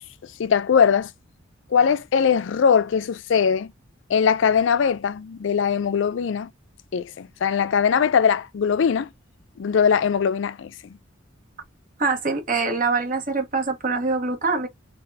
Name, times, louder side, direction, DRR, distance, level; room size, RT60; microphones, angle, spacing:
voice 1, 0.4-1.1 1.7-3.7 4.1-6.5 6.9-9.1 9.6-10.9, left 7 dB, 65° left, 0.4 m, -21 dB
voice 2, 12.0-14.7, right 4 dB, 40° right, 1.4 m, -24 dB
3.8 x 3.4 x 2.7 m
head